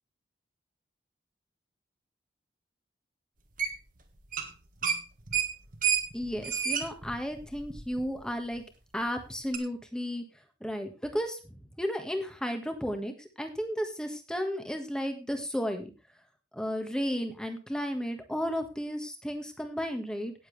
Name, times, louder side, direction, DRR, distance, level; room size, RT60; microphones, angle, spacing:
sound 1, 3.6-4.0 4.2-4.5 4.8-8.2 8.6-8.7 9.5-9.6, right 7 dB, 45° right, 1.7 m, -30 dB
voice 1, 6.1-8.6 8.9-10.2 10.6-11.4 11.8-15.9 16.5-20.3, equal, 5° left, 5 dB, 1.6 m, -33 dB
17.5 x 7.4 x 3.4 m, 0.30 s
head